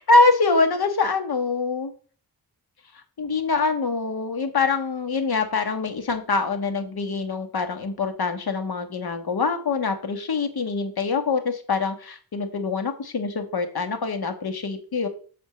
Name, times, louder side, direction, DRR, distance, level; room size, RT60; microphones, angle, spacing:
voice 1, 0.0-1.9 3.2-15.1, left 3 dB, 70° left, 7 dB, 1.6 m, -24 dB
8.2 x 4.3 x 7.0 m, 0.42 s
wide cardioid pair, 135°, 39 cm